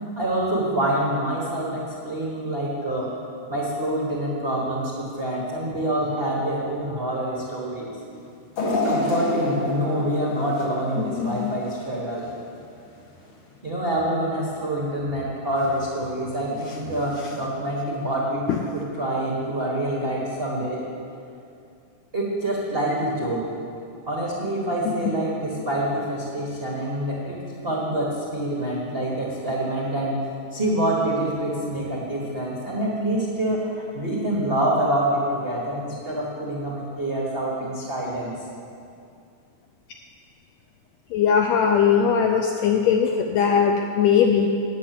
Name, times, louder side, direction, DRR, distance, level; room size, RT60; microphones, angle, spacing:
voice 1, 0.2-3.1 3.5-7.9 8.6-12.3 13.6-18.4 18.7-20.8 22.1-23.5 24.1-33.6 33.9-38.3, right 1 dB, 85° right, -5 dB, 0.5 m, -26 dB
sound 1, 8.6-11.7 12.1-12.3 13.3-13.4, left 2 dB, 50° left, 1.7 m, -27 dB
voice 2, 11.0-11.5 17.2-17.3 18.5-18.6 24.8-24.9 41.1-44.5, left 7 dB, 85° left, 3 dB, 1.6 m, -20 dB
9.0 x 8.3 x 7.5 m, 2.5 s
omnidirectional pair, 3.7 m